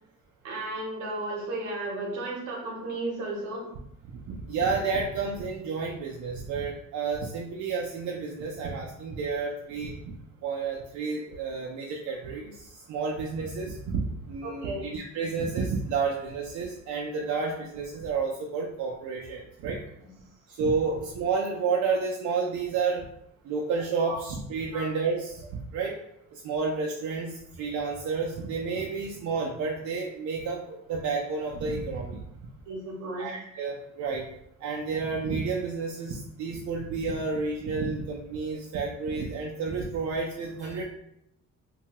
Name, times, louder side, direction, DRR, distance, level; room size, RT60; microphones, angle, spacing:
voice 1, 0.4-3.7 14.4-14.9 20.0-20.1 20.8-20.9 24.0-24.2 24.7-24.9 32.7-33.3, right 2 dB, 85° right, -1 dB, 0.9 m, -34 dB
voice 2, 4.3-10.1 10.4-19.8 20.5-23.1 23.4-26.0 26.3-32.2 33.2-34.3 34.6-40.8, right 4 dB, 70° right, -2 dB, 0.5 m, -30 dB
2.7 x 2.2 x 2.8 m, 0.76 s
cardioid pair, 90°, 30 cm